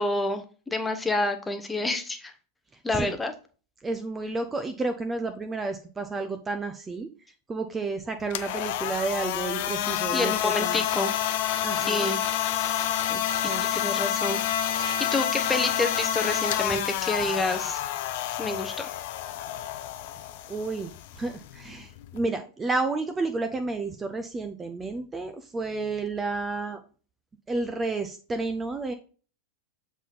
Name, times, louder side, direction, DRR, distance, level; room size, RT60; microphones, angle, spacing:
voice 1, 0.0-2.3 2.8-3.3 10.1-11.1 11.8-12.2 13.7-14.4 14.7-17.8 18.4-18.9, left 2 dB, 10° left, 6 dB, 0.9 m, -28 dB
voice 2, 3.8-7.1 7.5-10.8 11.6-12.1 12.8-13.2 13.5-13.6 20.5-20.9 21.2-26.8 27.5-28.9, right 3 dB, 15° right, 8 dB, 0.6 m, -31 dB
sound 1, 8.2-22.3, left 11 dB, 50° left, 0.5 m, -29 dB
7.4 x 4.1 x 4.0 m, 0.38 s
figure-of-eight pair, 90°, 0 cm